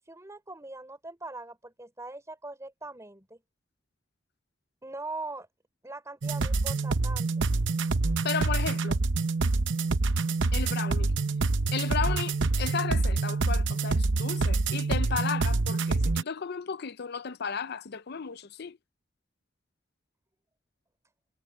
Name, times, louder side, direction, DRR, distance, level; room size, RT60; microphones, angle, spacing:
voice 1, 0.1-3.4 4.8-5.5 5.8-7.5, right 2 dB, 15° right, 3.9 m, -41 dB
sound 1, 6.2-16.2, right 3 dB, 75° right, 0.8 m, -26 dB
voice 2, 8.2-9.0 10.5-11.1 11.7-18.8, left 6 dB, 60° left, 0.6 m, -34 dB
head